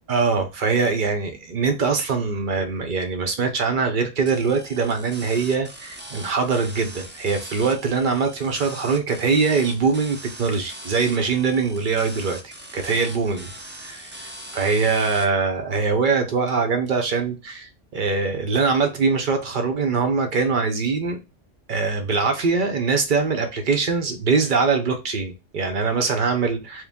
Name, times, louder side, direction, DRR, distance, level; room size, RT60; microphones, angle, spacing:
voice 1, 0.1-12.4 12.7-13.5 13.8-21.2 21.7-26.8, right 4 dB, 50° right, 0.7 m, -23 dB
sound 1, 4.3-15.3, right 1 dB, 15° right, 0.5 m, -40 dB
4.6 x 2.2 x 3.4 m
omnidirectional pair, 1.3 m